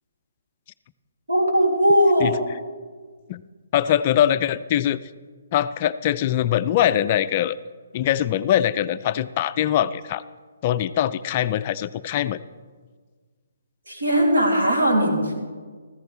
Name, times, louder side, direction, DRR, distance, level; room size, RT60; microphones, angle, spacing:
voice 1, 1.3-2.4 13.9-15.3, equal, 70° right, -1 dB, 2.9 m, -19 dB
voice 2, 3.7-5.0 5.5-7.6 7.9-10.2 10.6-12.4, left 11 dB, 35° left, 13 dB, 0.3 m, -22 dB
14.5 x 14.0 x 3.3 m, 1.6 s
figure-of-eight pair, 135°, 0 cm